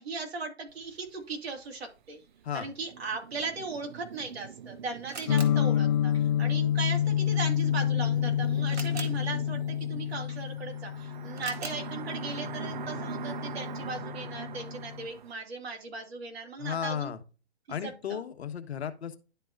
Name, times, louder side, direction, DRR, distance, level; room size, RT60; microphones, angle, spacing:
voice 1, 0.0-2.2 2.5-17.1 18.1-18.2, right 4 dB, 60° right, 2 dB, 2.8 m, -38 dB
sound 1, 0.7-1.1 1.6-1.7 2.3-15.3, right 8 dB, 45° right, 0.4 m, -43 dB
Camera, 4.1-14.0, right 4 dB, 90° right, 1.9 m, -49 dB
sound 2, 5.3-15.1, left 10 dB, 30° left, 0.5 m, -29 dB
voice 2, 16.6-17.2 17.7-19.2, left 8 dB, 70° left, 9 dB, 1.3 m, -34 dB
11.0 x 4.6 x 2.5 m, 0.32 s
hypercardioid pair, 155°, 34 cm